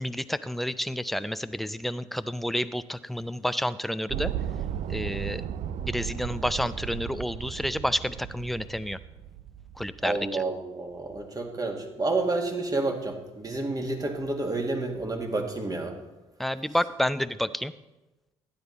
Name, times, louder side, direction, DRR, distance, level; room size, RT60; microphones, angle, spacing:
voice 1, 0.0-4.3 4.9-9.0 9.8-10.4 16.4-17.7, equal, ahead, 14 dB, 0.5 m, -30 dB
sound 1, 4.1-10.4, right 10 dB, 60° right, 0.6 m, -35 dB
voice 2, 10.0-16.0, right 2 dB, 25° right, 3 dB, 2.0 m, -30 dB
12.0 x 9.6 x 4.0 m, 1.0 s
hypercardioid pair, 55°, 14 cm